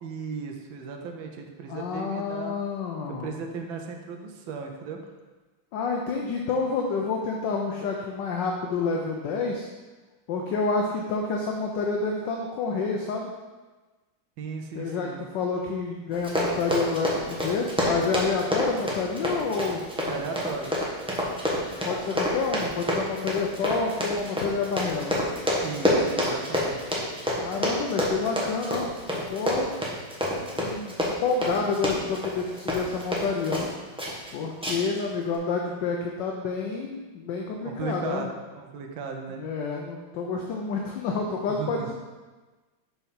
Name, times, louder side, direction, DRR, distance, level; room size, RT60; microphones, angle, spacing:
voice 1, 0.0-2.6 3.1-5.0 14.4-15.2 20.0-20.8 25.6-27.0 37.6-39.4 41.5-41.9, right 5 dB, 75° right, 2 dB, 1.5 m, -36 dB
voice 2, 1.7-3.3 5.7-9.7 10.3-13.3 14.8-19.8 21.8-25.2 27.4-29.7 30.6-30.9 31.2-33.7 34.3-38.3 39.4-41.9, left 4 dB, 70° left, 0 dB, 1.2 m, -29 dB
Run, 16.1-33.7 34.0-34.3 34.6-35.0 35.3-35.4, left 1 dB, 5° right, 0.6 m, -28 dB
5.6 x 4.6 x 5.7 m, 1.3 s
omnidirectional pair, 2.3 m